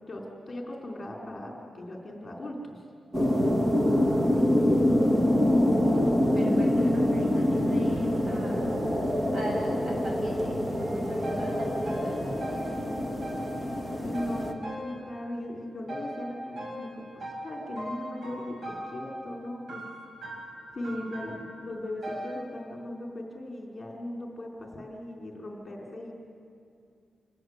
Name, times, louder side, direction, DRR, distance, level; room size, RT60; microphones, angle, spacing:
voice 1, 0.1-2.8 14.0-19.8 20.7-26.1, left 1 dB, 30° left, 0 dB, 3.9 m, -38 dB
sound 1, 3.1-14.5, left 1 dB, 20° right, 1.6 m, -25 dB
voice 2, 5.8-8.6 9.3-10.5 10.9-12.2, equal, 65° right, -1 dB, 7.6 m, -41 dB
sound 2, 10.8-15.5 15.9-22.4, right 1 dB, 80° right, 6.9 m, -40 dB
27.0 x 19.5 x 8.0 m, 2.5 s
wide cardioid pair, 150°, 0 cm